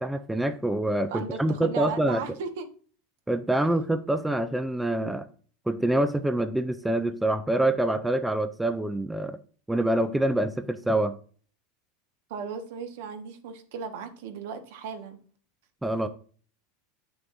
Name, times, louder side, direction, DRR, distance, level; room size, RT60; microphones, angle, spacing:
voice 1, 0.0-2.3 3.3-5.3 5.7-9.4 9.7-11.2 15.8-16.1, right 1 dB, 5° right, 0.4 m, -26 dB
voice 2, 1.1-2.7 12.3-15.2, right 6 dB, 70° right, 1.4 m, -36 dB
8.8 x 6.7 x 2.6 m
supercardioid pair, 155°, 0 cm